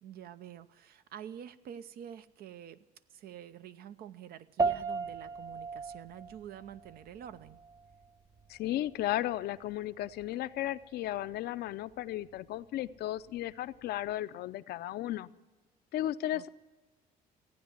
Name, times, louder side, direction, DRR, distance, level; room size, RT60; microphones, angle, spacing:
voice 1, 0.0-7.6 16.3-16.5, right 9 dB, 65° right, 13 dB, 0.7 m, -47 dB
sound 1, 4.6-14.2, right 4 dB, 20° right, 0.6 m, -39 dB
voice 2, 8.5-15.3 15.9-16.5, left 13 dB, 70° left, 13 dB, 0.6 m, -35 dB
15.5 x 9.3 x 9.6 m, 1.2 s
cardioid pair, 110°, 17 cm